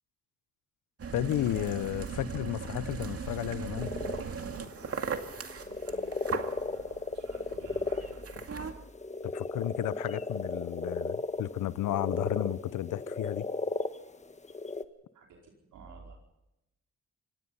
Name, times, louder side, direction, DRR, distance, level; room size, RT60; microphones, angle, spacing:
sound 1, 1.0-8.7, right 5 dB, 50° right, 2.2 m, -38 dB
voice 1, 1.1-3.9 9.3-13.5, left 13 dB, 90° left, 0.7 m, -33 dB
sound 2, 3.8-14.8, left 3 dB, 25° left, 1.3 m, -35 dB
voice 2, 5.8-8.2 15.1-16.2, right 4 dB, 85° right, 4.8 m, -52 dB
26.5 x 17.5 x 5.6 m
cardioid pair, 85°, 30 cm